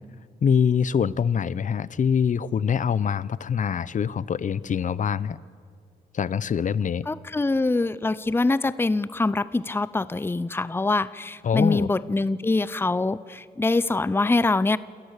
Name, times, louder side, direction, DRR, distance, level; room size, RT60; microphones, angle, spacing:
voice 1, 0.4-5.4 6.1-7.1 11.4-11.9, left 7 dB, 50° left, 20 dB, 0.7 m, -24 dB
voice 2, 7.1-14.8, left 3 dB, 15° left, 18 dB, 0.6 m, -24 dB
27.0 x 14.0 x 8.2 m, 2.1 s
cardioid pair, 65°, 17 cm